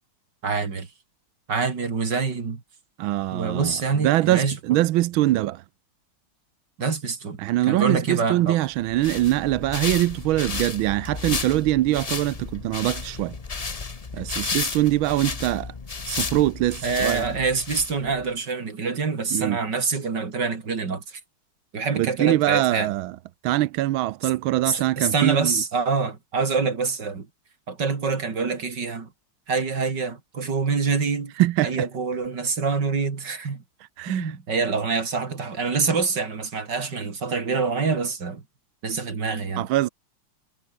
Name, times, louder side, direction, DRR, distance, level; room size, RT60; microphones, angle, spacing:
voice 1, 0.4-0.9 1.5-2.6 3.3-4.8 6.8-8.6 16.8-21.2 21.7-22.9 24.7-27.3 27.7-29.1 29.5-31.3 31.6-33.6 34.1-38.4 38.8-39.7, right 4 dB, 50° right, 3.3 m, -26 dB
voice 2, 3.0-5.6 7.4-13.4 14.1-15.7 16.1-17.3 19.3-19.6 21.9-23.1 23.4-25.6 31.4-31.9 34.0-34.3 39.6-39.9, right 15 dB, 75° right, 1.4 m, -23 dB
Steps on Snow, 8.8-18.3, left 4 dB, 35° left, 0.6 m, -33 dB
omnidirectional pair, 2.4 m